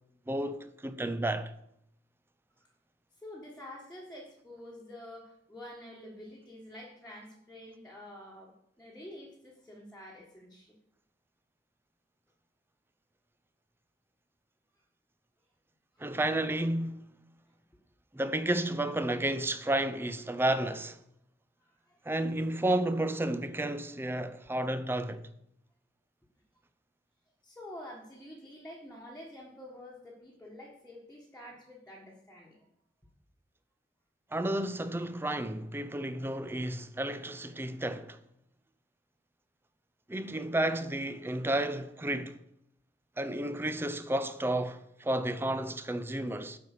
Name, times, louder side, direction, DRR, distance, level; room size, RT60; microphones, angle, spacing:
voice 1, 0.3-1.5 16.0-17.1 18.1-21.0 22.1-25.3 34.3-38.2 40.1-42.4 43.2-46.6, right 1 dB, 10° right, 0.5 m, -32 dB
voice 2, 3.2-10.7 15.9-16.4 18.5-18.6 21.6-22.0 27.4-32.7, left 1 dB, 5° left, 1.5 m, -48 dB
8.7 x 5.6 x 6.5 m
head